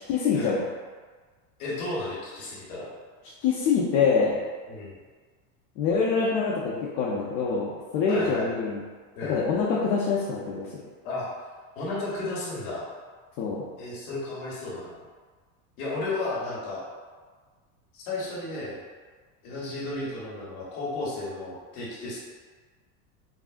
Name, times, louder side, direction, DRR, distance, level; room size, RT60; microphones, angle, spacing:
voice 1, 0.1-0.6 3.4-4.4 5.8-8.8 9.3-10.7 13.4-13.7, left 5 dB, 55° left, -4 dB, 0.6 m, -25 dB
voice 2, 1.6-2.9 4.7-4.9 8.1-8.5 9.2-9.4 11.0-11.3 11.8-12.8 13.8-15.0 15.8-16.8 17.9-18.8 19.4-22.2, left 2 dB, 80° left, -6 dB, 1.1 m, -33 dB
3.6 x 2.0 x 2.4 m, 1.5 s
supercardioid pair, 115°, 43 cm